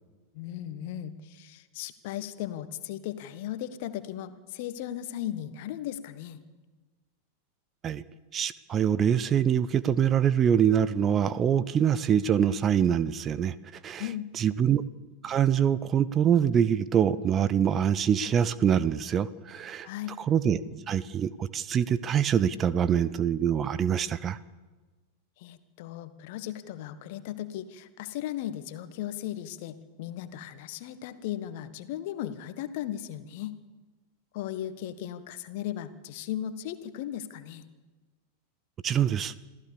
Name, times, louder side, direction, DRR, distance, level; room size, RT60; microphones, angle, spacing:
voice 1, 0.3-6.4 14.0-14.3 19.8-20.1 25.4-33.6 34.3-37.6, left 11 dB, 50° left, 12 dB, 1.5 m, -36 dB
voice 2, 8.3-13.5 13.8-14.0 14.3-14.8 15.2-19.9 20.2-24.4 38.8-39.3, right 8 dB, 25° right, 17 dB, 0.7 m, -24 dB
27.0 x 15.5 x 6.9 m, 1.3 s
figure-of-eight pair, 90°, 0 cm